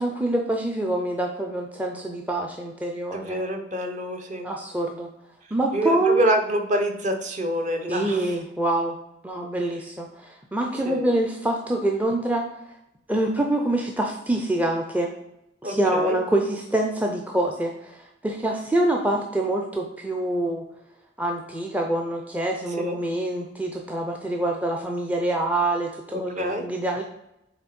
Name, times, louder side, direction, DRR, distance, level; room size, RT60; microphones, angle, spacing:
voice 1, 0.0-3.4 4.4-5.1 5.5-6.3 7.9-9.0 9.2-12.4 13.1-15.1 15.6-20.7 21.2-27.0, right 1 dB, 10° right, 1 dB, 0.5 m, -25 dB
voice 2, 3.1-4.5 5.7-8.4 10.8-11.0 15.6-16.2 22.8-23.0 26.1-26.6, right 1 dB, 40° right, 4 dB, 0.9 m, -26 dB
8.1 x 3.2 x 4.3 m, 0.85 s
head